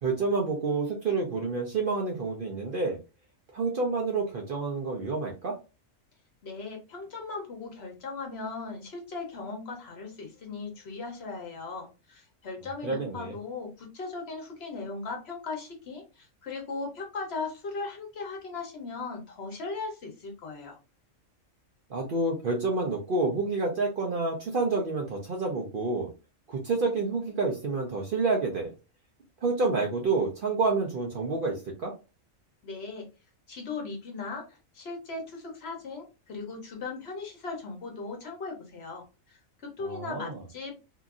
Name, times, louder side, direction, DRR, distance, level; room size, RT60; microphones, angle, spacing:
voice 1, 0.0-3.0 3.5-5.6 12.8-13.3 21.9-26.1 26.5-28.7 29.4-31.9 39.8-40.4, right 3 dB, 55° right, 0 dB, 0.6 m, -28 dB
voice 2, 6.4-20.8 32.6-33.1 33.5-40.9, left 4 dB, 55° left, 1 dB, 1.0 m, -38 dB
2.8 x 2.5 x 2.4 m, 0.29 s
omnidirectional pair, 1.4 m